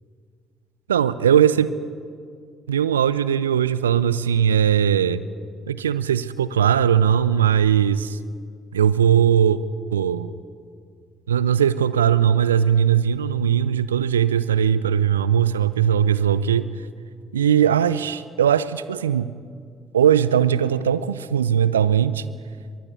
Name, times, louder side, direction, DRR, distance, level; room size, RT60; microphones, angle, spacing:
voice 1, 0.9-1.7 2.7-5.2 5.7-8.2 8.7-9.6 9.9-10.3 11.3-16.7 17.3-19.3 19.9-22.2, right 9 dB, 85° right, 16 dB, 0.5 m, -19 dB
23.0 x 13.5 x 8.2 m, 2.1 s
figure-of-eight pair, 50°, 0 cm